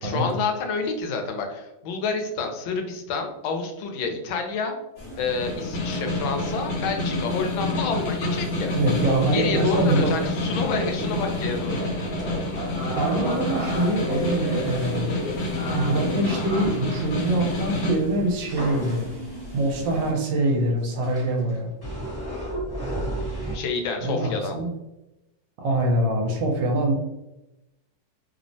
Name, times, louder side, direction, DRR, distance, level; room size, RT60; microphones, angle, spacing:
voice 1, 0.0-4.7 5.2-8.7 9.3-11.9 23.5-24.6, left 4 dB, 85° left, 4 dB, 1.4 m, -28 dB
sound 1, 5.0-20.1, equal, 45° left, 1.1 m, -41 dB
Snare drum, 5.3-18.0, left 1 dB, 70° left, 1.3 m, -28 dB
sound 2, 5.9-6.3 6.8-7.1 7.3-17.5 18.5-19.3 20.0-20.1 20.5-20.6 21.0-23.5, equal, 15° left, 0.8 m, -33 dB
voice 2, 8.7-10.1 11.0-11.2 13.0-15.1 15.7-19.1 19.5-21.7 24.0-24.7 25.6-26.9, right 1 dB, 75° right, 1 dB, 1.3 m, -24 dB
3.3 x 2.0 x 2.5 m, 0.94 s
omnidirectional pair, 2.1 m